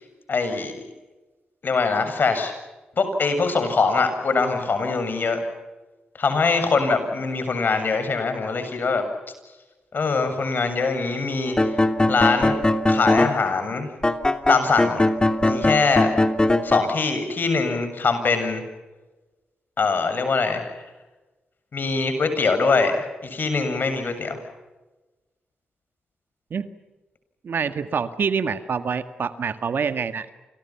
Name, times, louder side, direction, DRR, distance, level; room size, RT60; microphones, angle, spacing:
voice 1, 0.3-0.8 1.6-2.5 3.0-5.4 6.2-9.0 9.9-11.8 12.1-12.6 12.9-13.9 14.5-15.0 15.4-16.2 16.6-18.6 19.8-20.6 21.7-24.4, left 4 dB, 55° left, 8 dB, 7.2 m, -23 dB
sound 1, 11.5-13.4 14.0-16.9, left 2 dB, 20° left, 2.6 m, -20 dB
voice 2, 27.4-30.3, right 6 dB, 65° right, 10 dB, 1.8 m, -26 dB
29.0 x 28.5 x 5.9 m, 1.1 s
supercardioid pair, 40°, 4 cm